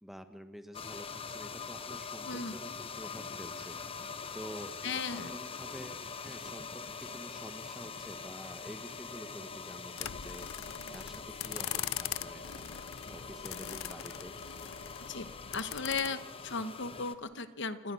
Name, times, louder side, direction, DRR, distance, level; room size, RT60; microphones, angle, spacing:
voice 1, 0.0-3.8 4.3-10.5 10.9-12.8 13.1-14.3, equal, ahead, 7 dB, 1.2 m, -48 dB
sound 1, 0.7-17.1, left 5 dB, 25° left, 0.9 m, -43 dB
voice 2, 2.3-2.6 4.8-5.3 15.1-15.2 15.5-17.9, left 4 dB, 55° left, 11 dB, 1.1 m, -36 dB
sound 2, 10.0-16.1, left 11 dB, 80° left, 0.7 m, -41 dB
29.5 x 10.5 x 9.9 m, 1.1 s
head